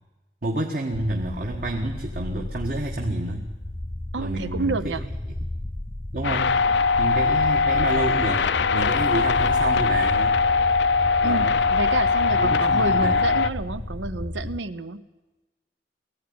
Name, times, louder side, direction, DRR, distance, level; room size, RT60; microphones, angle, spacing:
voice 1, 0.4-3.5 4.2-5.0 5.4-5.5 6.1-6.6 7.0-8.4 8.7-10.4 11.2-11.6 12.3-13.3, right 1 dB, 50° right, 2 dB, 1.5 m, -29 dB
sound 1, 0.9-14.6, left 1 dB, 15° left, 0.6 m, -33 dB
voice 2, 4.1-5.0 11.2-15.0, right 3 dB, 90° right, 13 dB, 0.9 m, -29 dB
sound 2, 6.2-13.5, left 4 dB, 70° left, 0.6 m, -21 dB
19.0 x 15.0 x 9.6 m, 1.1 s
head